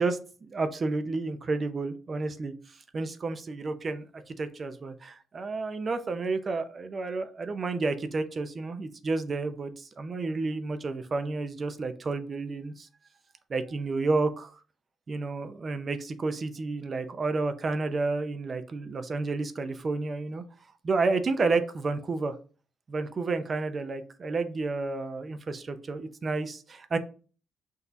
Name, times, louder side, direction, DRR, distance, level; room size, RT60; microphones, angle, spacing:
voice 1, 0.0-2.5 2.9-12.9 13.5-14.6 15.1-20.4 20.8-22.3 22.9-27.0, right 3 dB, 40° right, 9 dB, 0.6 m, -31 dB
5.9 x 2.7 x 2.6 m, 0.38 s
cardioid pair, 90°, 0 cm